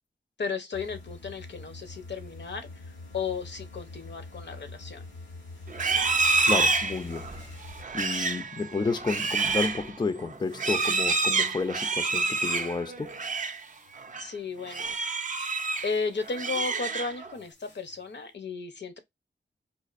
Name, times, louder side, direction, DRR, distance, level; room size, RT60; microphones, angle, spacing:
voice 1, 0.4-2.8 3.1-5.0 14.2-14.9 15.8-19.0, left 4 dB, 65° left, 0.7 m, -34 dB
sound 1, 0.7-7.9 10.4-11.7 12.3-14.2 14.6-15.0 15.5-16.7 17.0-18.1, left 3 dB, 85° left, 1.5 m, -46 dB
Livestock farm animals working animals, 5.7-13.6 14.0-14.3 14.7-15.9 16.3-17.3, right 4 dB, 40° right, 0.4 m, -28 dB
voice 2, 6.4-7.3 7.9-13.1, left 4 dB, 25° left, 0.4 m, -31 dB
4.1 x 2.4 x 2.4 m
wide cardioid pair, 70°, 19 cm